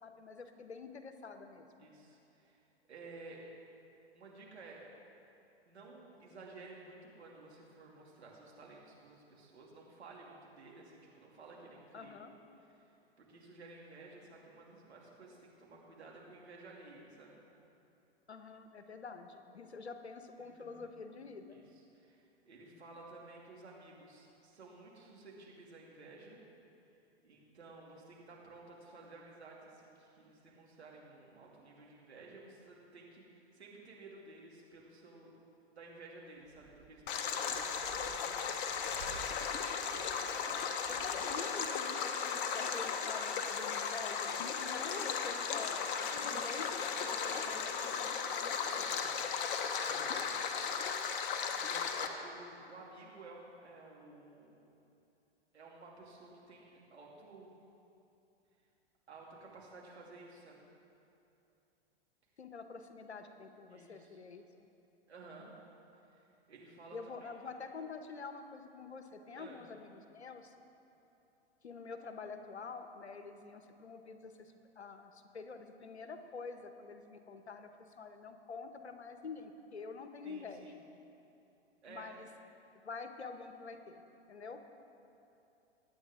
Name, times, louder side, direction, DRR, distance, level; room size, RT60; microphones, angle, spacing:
voice 1, 0.0-1.9 11.9-12.4 18.3-21.6 40.9-46.7 62.4-64.5 65.4-65.5 66.9-70.5 71.6-80.7 81.9-82.3 82.8-84.0 84.3-84.6, left 4 dB, 85° left, 8 dB, 1.1 m, -47 dB
voice 2, 1.8-2.6 2.9-3.5 4.1-4.8 5.7-12.1 12.7-17.4 20.4-20.9 21.5-26.4 27.2-35.3 35.8-37.6 37.9-38.6 39.3-41.3 46.2-46.7 46.9-49.2 49.7-50.4 51.5-54.5 55.5-57.5 59.1-60.6 63.7-64.2 65.1-65.6 66.0-67.3 69.3-69.7 80.2-80.8 81.8-82.1, right 3 dB, 80° right, -3 dB, 2.8 m, -54 dB
sound 1, 36.4-37.0 37.4-39.3 39.8-40.4 40.7-41.4, right 8 dB, 50° right, 1.3 m, -54 dB
Stream, 37.1-52.1, left 6 dB, 55° left, 1.1 m, -36 dB
22.0 x 9.0 x 3.7 m, 2.9 s
figure-of-eight pair, 100°, 32 cm